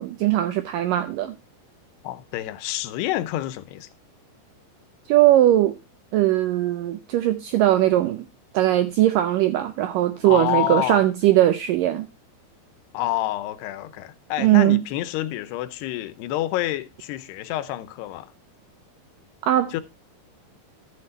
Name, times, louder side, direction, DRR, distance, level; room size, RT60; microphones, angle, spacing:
voice 1, 0.0-1.3 5.1-5.8 6.1-8.3 8.5-12.1 14.4-14.8 19.4-19.8, right 14 dB, 85° right, 1.9 m, -20 dB
voice 2, 2.0-3.9 10.2-11.0 12.9-18.3 19.7-19.8, left 15 dB, 85° left, 2.8 m, -28 dB
13.0 x 6.7 x 4.1 m
omnidirectional pair, 4.6 m